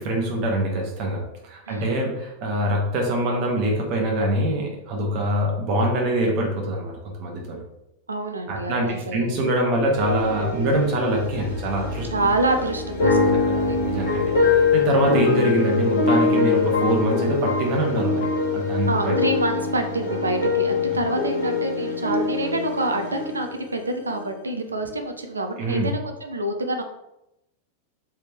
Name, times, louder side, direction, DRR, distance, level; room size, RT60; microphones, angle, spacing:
voice 1, 0.0-7.6 8.5-12.1 13.3-13.5 13.8-18.3 18.5-19.1 25.6-25.9, right 1 dB, 40° right, -1 dB, 1.1 m, -24 dB
voice 2, 1.7-2.0 8.1-9.3 12.1-13.8 14.1-14.5 14.8-15.0 18.9-26.8, right 2 dB, 75° right, 5 dB, 0.4 m, -27 dB
sound 1, 10.0-23.7 24.0-24.2, left 4 dB, 60° left, 0.9 m, -23 dB
3.4 x 3.2 x 2.9 m, 0.86 s
figure-of-eight pair, 90°, 0 cm